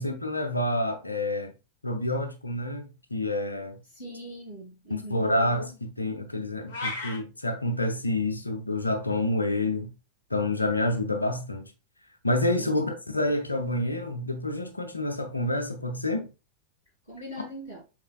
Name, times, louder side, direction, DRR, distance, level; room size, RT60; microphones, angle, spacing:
voice 1, 0.0-1.5 1.8-3.8 4.9-9.9 10.3-11.7 12.2-16.3, left 1 dB, 80° left, 0.6 m, -28 dB
voice 2, 3.8-5.4 12.6-12.8 17.0-17.8, equal, 90° right, 1.9 m, -41 dB
sound 1, 6.7-7.2, left 3 dB, 55° left, 1.1 m, -33 dB
4.8 x 3.7 x 2.3 m
figure-of-eight pair, 90°, 0 cm